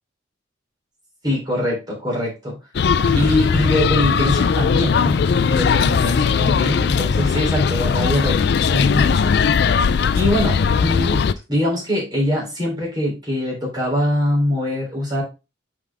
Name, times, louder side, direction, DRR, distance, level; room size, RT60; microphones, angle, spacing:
voice 1, 1.2-2.6 3.1-5.2 5.5-9.2 10.2-15.2, left 1 dB, 20° right, -4 dB, 3.4 m, -23 dB
sound 1, 2.7-11.3, left 6 dB, 60° left, 0.3 m, -18 dB
6.0 x 4.8 x 3.4 m, 0.28 s
head